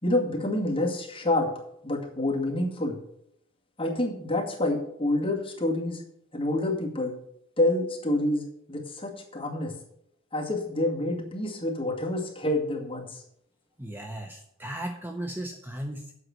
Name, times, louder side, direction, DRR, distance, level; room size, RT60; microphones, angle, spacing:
voice 1, 0.0-3.0 3.8-6.0 6.3-7.1 7.6-8.4 8.7-9.7 10.3-13.2, left 1 dB, 25° left, -2 dB, 2.1 m, -28 dB
voice 2, 13.8-16.1, right 1 dB, 10° right, 3 dB, 0.7 m, -36 dB
8.0 x 5.6 x 7.7 m, 0.72 s
head